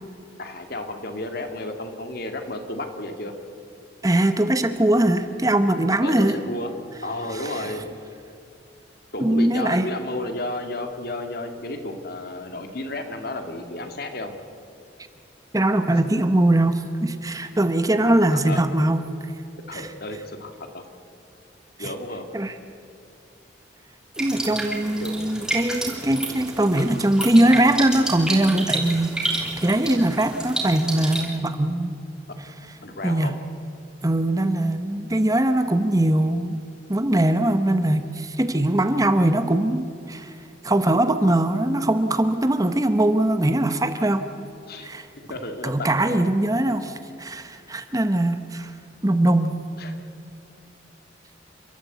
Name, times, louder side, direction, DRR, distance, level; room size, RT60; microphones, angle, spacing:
voice 1, 0.4-3.3 6.0-6.7 7.0-7.9 9.1-14.3 18.3-18.6 19.7-20.8 21.8-22.2 25.0-25.2 32.8-33.3 44.7-44.9 45.3-45.7 46.1-46.2 49.8-49.9, left 1 dB, 55° left, 6 dB, 2.2 m, -32 dB
voice 2, 4.0-6.4 7.3-7.7 9.2-9.9 15.5-19.0 19.7-19.9 21.8-21.9 22.3-22.5 24.2-32.0 33.0-33.3 34.0-36.6 36.9-40.3 40.6-44.3 44.8-45.1 45.6-48.7 49.0-49.6, right 1 dB, 20° right, 9 dB, 0.9 m, -21 dB
sound 1, 24.1-31.2, right 2 dB, 5° right, 3.3 m, -30 dB
29.5 x 13.0 x 8.3 m, 2.6 s
head